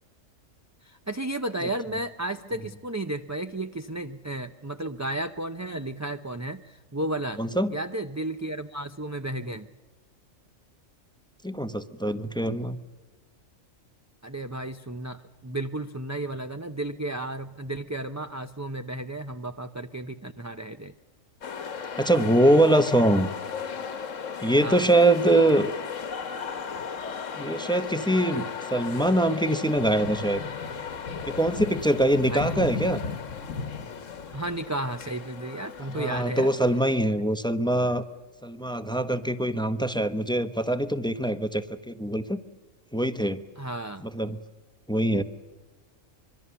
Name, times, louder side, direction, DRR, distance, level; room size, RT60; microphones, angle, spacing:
voice 1, 0.8-7.4 7.7-9.7 14.2-20.9 24.6-24.8 32.3-32.6 34.3-36.5 43.6-44.1, right 1 dB, 20° right, 8 dB, 0.5 m, -33 dB
voice 2, 7.4-7.7 11.4-12.8 22.0-23.3 24.4-25.7 27.4-30.4 31.3-33.0 35.9-38.0 38.4-42.4 42.9-43.4 44.0-44.4 44.9-45.2, right 1 dB, 5° left, 10 dB, 0.9 m, -23 dB
sound 1, 21.4-37.0, left 6 dB, 70° left, 1.5 m, -35 dB
26.0 x 23.0 x 7.0 m, 1.3 s
omnidirectional pair, 1.3 m